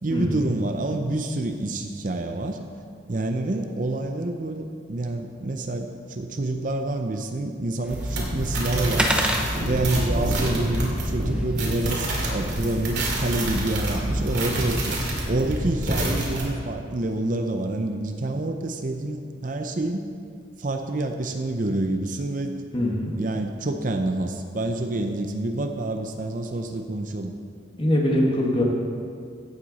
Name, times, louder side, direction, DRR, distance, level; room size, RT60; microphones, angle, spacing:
voice 1, 0.0-2.6 3.1-9.1 9.6-15.0 15.2-20.1 20.6-22.6 23.1-27.3, right 2 dB, 45° right, 5 dB, 0.6 m, -27 dB
sound 1, 7.8-13.3, equal, 5° right, 0.8 m, -32 dB
sound 2, 7.9-16.4, right 1 dB, 60° right, 2.5 m, -27 dB
voice 2, 22.7-23.1 27.8-28.6, left 1 dB, 25° left, -2 dB, 1.7 m, -22 dB
16.0 x 7.9 x 4.1 m, 2.2 s
head